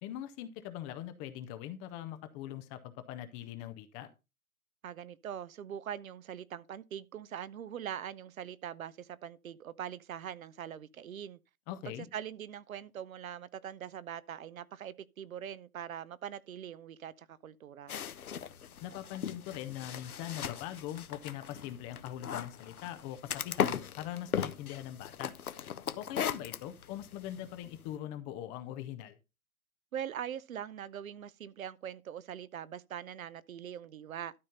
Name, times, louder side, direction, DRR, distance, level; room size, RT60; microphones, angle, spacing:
voice 1, 0.0-4.1 11.7-12.1 18.8-25.3 26.0-29.2, left 12 dB, 15° left, 0.5 m, -42 dB
voice 2, 4.8-11.4 11.8-17.9 29.9-34.3, right 9 dB, 70° right, 0.8 m, -42 dB
sound 1, 17.9-27.9, left 8 dB, 80° left, 0.9 m, -38 dB
12.5 x 4.2 x 5.2 m
hypercardioid pair, 120°, 43 cm